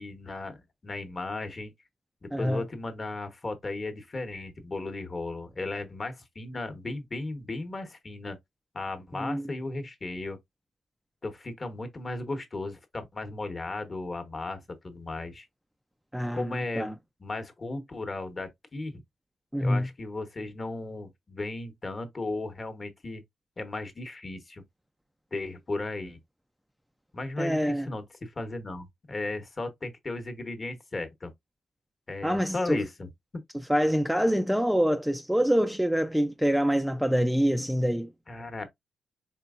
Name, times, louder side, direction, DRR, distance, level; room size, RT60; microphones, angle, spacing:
voice 1, 0.0-1.7 2.2-8.4 8.7-10.4 11.2-15.5 16.3-19.0 19.6-23.2 23.6-24.6 25.3-26.2 27.1-31.3 32.1-33.4 38.3-38.7, left 2 dB, 35° left, 1.1 m, -35 dB
voice 2, 2.3-2.6 9.2-9.4 16.1-16.9 19.5-19.9 27.4-27.9 32.2-32.8 33.7-38.1, equal, 5° right, 0.4 m, -25 dB
4.5 x 3.4 x 2.4 m
cardioid pair, 90°, 0 cm